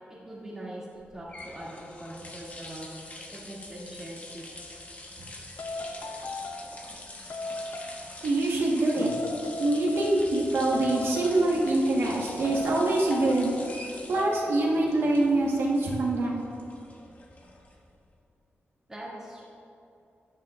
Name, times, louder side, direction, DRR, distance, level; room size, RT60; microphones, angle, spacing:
voice 1, 0.2-0.9 1.1-2.9 3.3-4.4 18.9-19.4, right 1 dB, 10° right, -7 dB, 2.3 m, -41 dB
sound 1, 1.0-18.0, left 2 dB, 35° left, 1.0 m, -45 dB
sound 2, 4.6-4.8 5.6-6.8 7.3-8.0 9.0-10.4 10.7-11.6 12.4-13.6 14.2-14.7, left 2 dB, 75° left, 0.6 m, -37 dB
voice 2, 8.2-9.1 9.6-13.5 14.1-16.4, right 2 dB, 75° right, -3 dB, 1.3 m, -25 dB
12.0 x 10.0 x 2.4 m, 2.7 s
wide cardioid pair, 155°, 4 cm